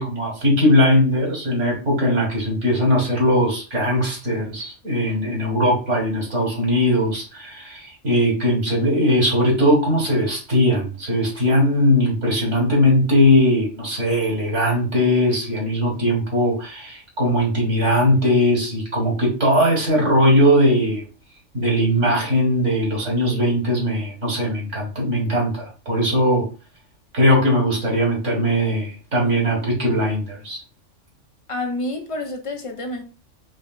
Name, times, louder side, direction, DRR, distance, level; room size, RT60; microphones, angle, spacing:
voice 1, 0.0-21.0 21.5-26.5 27.1-30.6, equal, 70° right, 2.0 m, -19 dB
voice 2, 31.5-33.0, left 2 dB, 35° left, 0.6 m, -28 dB
4.9 x 3.2 x 2.4 m
omnidirectional pair, 1.3 m